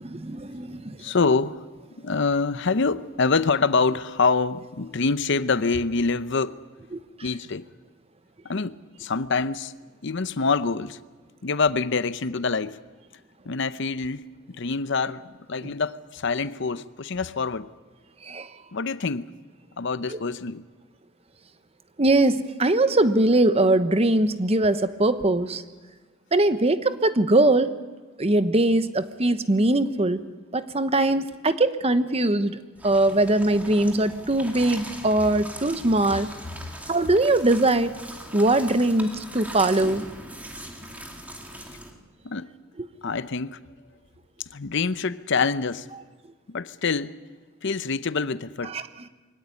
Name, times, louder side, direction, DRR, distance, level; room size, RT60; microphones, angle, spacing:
voice 1, 0.0-1.0 6.9-7.0 15.6-15.7 18.2-18.5 20.1-20.2 22.0-25.6 26.3-27.7 28.2-30.2 30.5-36.3 36.9-38.0 38.3-40.0 48.7-48.8, right 2 dB, 30° right, 1.0 m, -21 dB
voice 2, 1.0-1.6 2.0-6.6 7.2-7.6 8.4-9.7 10.0-11.0 11.4-12.8 13.4-17.7 18.7-19.3 19.8-20.6 42.2-42.5 43.0-43.6 44.5-45.9 46.5-47.2 47.6-48.8, left 4 dB, 60° left, 0.8 m, -26 dB
sound 1, 32.7-41.9, right 1 dB, 10° right, 2.2 m, -40 dB
23.0 x 17.0 x 9.7 m
head